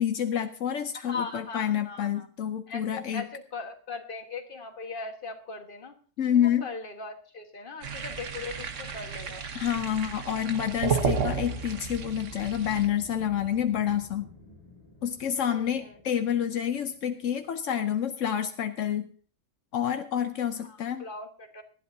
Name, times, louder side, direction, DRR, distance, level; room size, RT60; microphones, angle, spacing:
voice 1, 0.0-3.3 6.2-6.7 9.5-14.3 15.0-19.1 19.7-21.0, left 9 dB, 80° left, 8 dB, 1.1 m, -28 dB
voice 2, 0.9-2.3 2.7-5.9 6.4-9.5 15.5-16.0 20.6-21.6, left 4 dB, 45° left, 5 dB, 1.8 m, -39 dB
sound 1, 7.8-12.9, right 5 dB, 75° right, 1.5 m, -32 dB
sound 2, 11.7-18.0, left 2 dB, 20° right, 5.1 m, -51 dB
18.5 x 12.5 x 2.8 m, 0.42 s
omnidirectional pair, 1.3 m